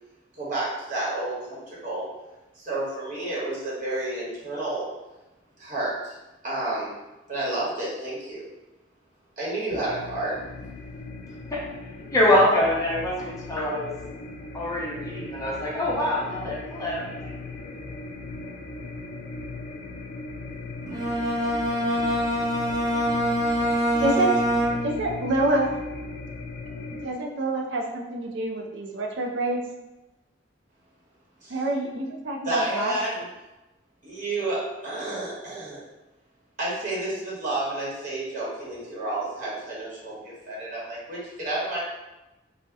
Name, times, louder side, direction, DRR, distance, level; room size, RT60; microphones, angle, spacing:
voice 1, 0.4-2.1 2.5-4.9 5.6-6.2 6.4-7.0 7.3-8.5 9.4-10.4 31.4-31.6 32.4-33.2 34.0-35.8 36.6-41.8, right 2 dB, 45° right, -6 dB, 1.0 m, -30 dB
sound 1, 9.7-27.1, left 3 dB, 50° left, 0.3 m, -38 dB
voice 2, 12.1-13.9 14.5-17.3, left 1 dB, 20° left, -5 dB, 0.7 m, -24 dB
Bowed string instrument, 20.9-25.1, equal, 20° right, 0.6 m, -25 dB
voice 3, 24.0-24.3 24.8-25.7 27.0-29.6 31.5-32.9, right 2 dB, 75° right, 1 dB, 0.4 m, -26 dB
2.7 x 2.0 x 3.4 m, 1.0 s
head